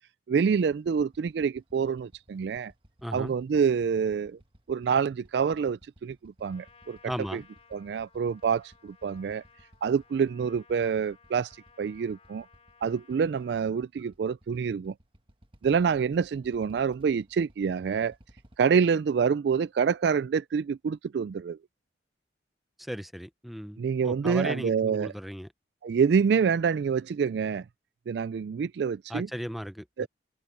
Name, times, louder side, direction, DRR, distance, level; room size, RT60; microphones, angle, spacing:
voice 1, 0.3-2.7 3.1-4.4 4.7-7.0 7.3-7.4 7.7-9.4 9.8-11.5 11.8-12.5 12.8-14.9 15.6-18.1 18.6-21.6 23.8-25.1 25.8-27.7 28.1-29.3 30.0-30.1, right 6 dB, 65° right, 0.3 m, -27 dB
Motorcycle / Idling, 0.7-18.6, right 1 dB, 30° right, 1.4 m, -59 dB
voice 2, 3.0-3.3 7.1-7.4 22.8-25.5 29.1-30.1, equal, ahead, 0.7 m, -36 dB
Trumpet, 6.4-13.7, left 5 dB, 35° left, 2.7 m, -59 dB
open air
head